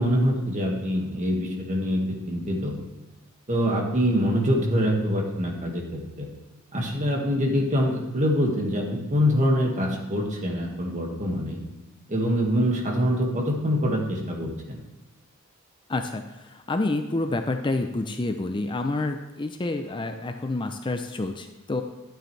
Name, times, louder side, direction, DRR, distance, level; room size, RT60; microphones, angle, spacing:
voice 1, 0.0-2.8 3.5-6.3 6.7-11.6 12.1-14.8, equal, 35° right, 0 dB, 1.9 m, -25 dB
voice 2, 15.9-21.8, left 2 dB, 20° left, 6 dB, 0.5 m, -28 dB
11.5 x 9.0 x 3.3 m, 1.1 s
head